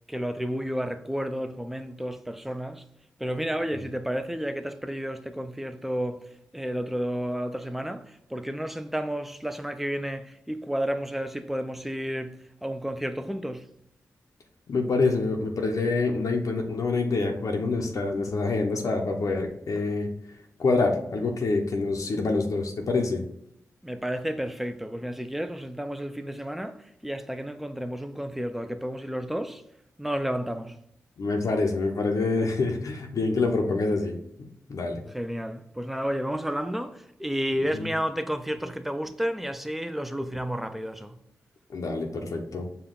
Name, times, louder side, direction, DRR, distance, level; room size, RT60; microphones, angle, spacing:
voice 1, 0.1-2.8 3.2-13.7 23.8-29.6 30.0-30.8 35.1-41.2, equal, 5° right, 0.4 m, -31 dB
voice 2, 14.7-20.1 20.6-23.2 31.2-35.0 37.7-37.9 41.7-42.7, left 3 dB, 65° left, 0.6 m, -26 dB
5.2 x 2.3 x 3.7 m
cardioid pair, 50°, 6 cm